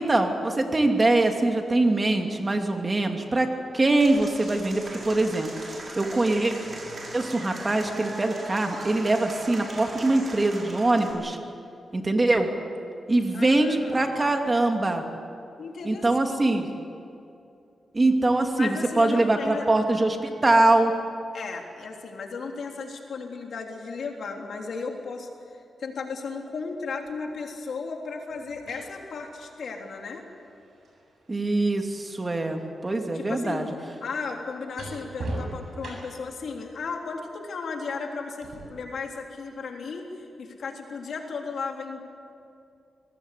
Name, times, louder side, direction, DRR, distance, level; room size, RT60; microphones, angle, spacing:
voice 1, 0.0-3.5 3.7-5.5 6.0-6.5 7.1-11.4 11.9-12.5 13.1-15.0 15.8-16.7 17.9-20.9 31.3-33.7, right 2 dB, 30° right, 4 dB, 2.6 m, -23 dB
Applause / Crowd, 4.0-11.1, right 2 dB, 50° right, 5.9 m, -40 dB
voice 2, 13.3-14.1 15.6-16.8 18.6-19.7 21.3-30.2 33.1-33.7 34.0-42.0, left 4 dB, 70° left, 2 dB, 3.4 m, -35 dB
sound 1, 27.1-27.2 28.3-32.3 32.6-36.4 38.4-38.6, right 2 dB, 70° right, 7.9 m, -41 dB
24.0 x 19.5 x 8.4 m, 2.6 s
cardioid pair, 80°, 0 cm